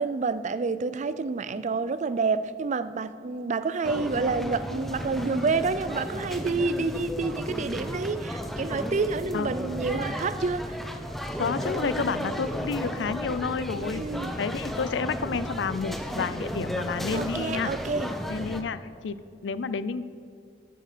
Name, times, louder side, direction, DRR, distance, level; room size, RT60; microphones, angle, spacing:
voice 1, 0.0-10.8 13.9-14.3 17.1-18.1, right 4 dB, 40° right, 14 dB, 0.4 m, -28 dB
sound 1, 3.8-18.6, equal, ahead, 0.7 m, -34 dB
voice 2, 11.4-14.0 14.4-17.7 18.3-19.2 19.4-20.0, left 5 dB, 85° left, 15 dB, 0.5 m, -30 dB
13.0 x 7.8 x 5.0 m, 2.4 s
head